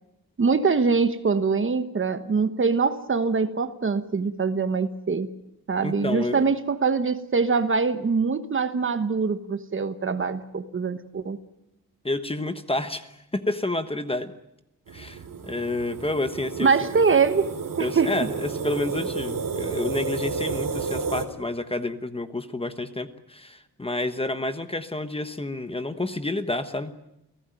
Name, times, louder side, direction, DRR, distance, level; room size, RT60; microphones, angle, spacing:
voice 1, 0.4-5.3 5.7-11.4 16.6-17.5 17.8-18.1, right 5 dB, 35° right, 10 dB, 1.3 m, -23 dB
voice 2, 5.8-6.4 12.0-14.3 14.9-16.7 17.8-26.9, left 2 dB, 15° left, 9 dB, 1.1 m, -29 dB
sound 1, 14.9-21.3, right 5 dB, 60° right, 3.1 m, -31 dB
29.5 x 17.0 x 9.2 m, 0.87 s
wide cardioid pair, 175°, 37 cm